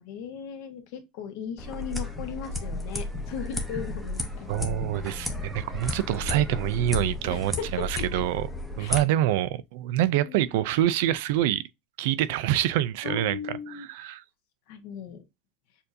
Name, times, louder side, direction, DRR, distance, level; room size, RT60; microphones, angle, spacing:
voice 1, 0.0-4.5 7.3-8.1 8.8-9.0 10.1-10.5 13.0-14.1 14.7-15.3, left 7 dB, 55° left, 1.0 m, -37 dB
sound 1, 1.6-9.0, left 2 dB, ahead, 0.6 m, -33 dB
sound 2, 4.5-7.9, left 3 dB, 20° left, 1.9 m, -54 dB
voice 2, 4.5-8.5 8.8-11.6 12.0-13.4 13.7-14.2, right 13 dB, 60° right, 0.3 m, -26 dB
6.6 x 2.6 x 2.6 m
supercardioid pair, 180°, 0 cm